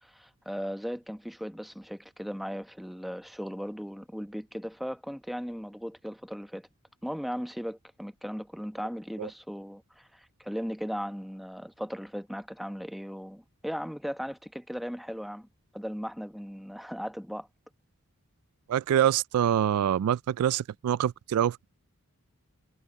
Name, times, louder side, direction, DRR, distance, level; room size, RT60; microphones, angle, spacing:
voice 1, 0.0-6.7 7.0-15.5 15.7-17.5, equal, ahead, 1.1 m, -37 dB
voice 2, 18.7-21.6, right 10 dB, 80° right, 0.3 m, -25 dB
head